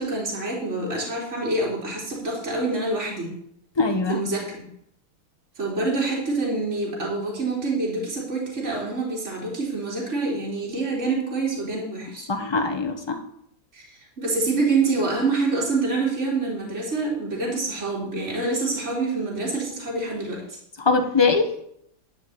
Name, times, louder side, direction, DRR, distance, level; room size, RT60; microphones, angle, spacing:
voice 1, 0.0-3.3 4.1-4.7 5.6-12.3 13.7-20.6, right 3 dB, 35° right, -3 dB, 3.5 m, -26 dB
voice 2, 3.8-4.2 12.3-13.2 20.8-21.5, left 4 dB, 20° left, 4 dB, 0.7 m, -22 dB
11.5 x 5.8 x 7.9 m, 0.73 s
omnidirectional pair, 2.3 m